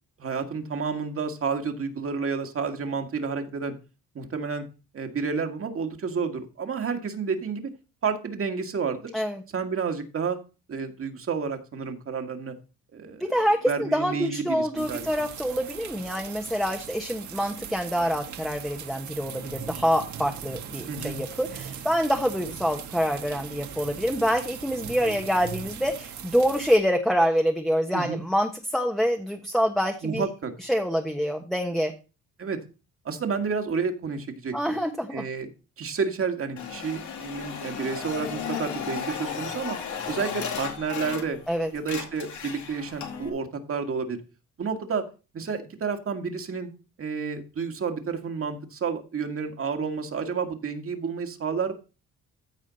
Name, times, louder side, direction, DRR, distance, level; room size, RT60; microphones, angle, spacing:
voice 1, 0.2-3.7 4.1-4.7 4.9-7.7 8.0-9.1 9.5-10.4 10.7-12.6 12.9-13.3 13.7-15.3 20.9-21.2 27.9-28.2 30.0-30.5 32.4-32.6 33.1-34.7 35.1-35.5 35.8-39.8 40.1-41.4 41.7-44.2 44.6-45.0 45.3-46.7 47.0-51.7, right 5 dB, 45° right, 5 dB, 2.0 m, -30 dB
voice 2, 13.3-30.3 30.6-31.9 34.5-35.2 41.5-41.7, equal, ahead, 3 dB, 1.3 m, -26 dB
sound 1, 14.8-26.8, right 8 dB, 70° right, 1.7 m, -39 dB
sound 2, 36.6-41.5 41.8-43.3, left 7 dB, 70° left, 2.4 m, -35 dB
14.5 x 5.0 x 4.1 m, 0.32 s
cardioid pair, 90°, 30 cm